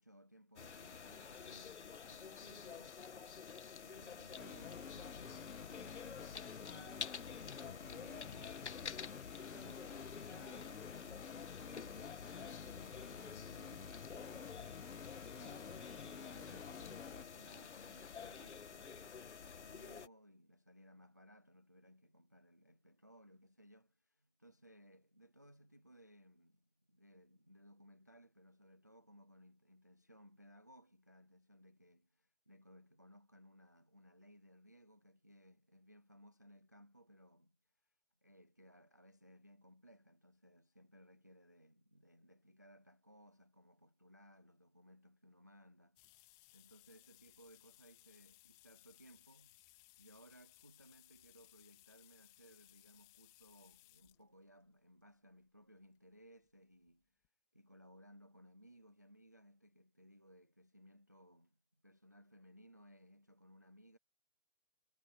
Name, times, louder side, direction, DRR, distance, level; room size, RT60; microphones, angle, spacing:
voice 1, 0.0-3.3 3.8-37.9 38.2-49.6 50.0-57.2 57.5-64.0, equal, 15° right, 0.6 m, -63 dB
sound 1, 0.6-20.1, left 6 dB, 60° left, 1.7 m, -50 dB
sound 2, 4.4-17.2, left 6 dB, 80° left, 1.4 m, -51 dB
sound 3, 46.0-54.2 55.1-55.2 56.4-56.5 56.9-57.0 57.2-57.3, left 20 dB, 10° left, 2.5 m, -65 dB
hypercardioid pair, 170°, 39 cm